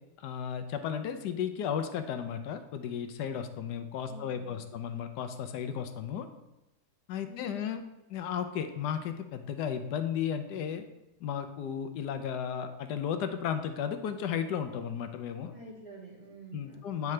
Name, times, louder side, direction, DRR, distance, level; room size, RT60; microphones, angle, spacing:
voice 1, 0.2-6.3 7.1-7.8 8.1-10.8 11.2-15.5 16.5-17.1, left 8 dB, 90° left, 8 dB, 1.3 m, -34 dB
voice 2, 4.1-4.7 7.3-7.6 15.5-17.1, right 1 dB, 25° right, -9 dB, 2.1 m, -48 dB
9.3 x 4.8 x 3.2 m, 0.97 s
omnidirectional pair, 1.7 m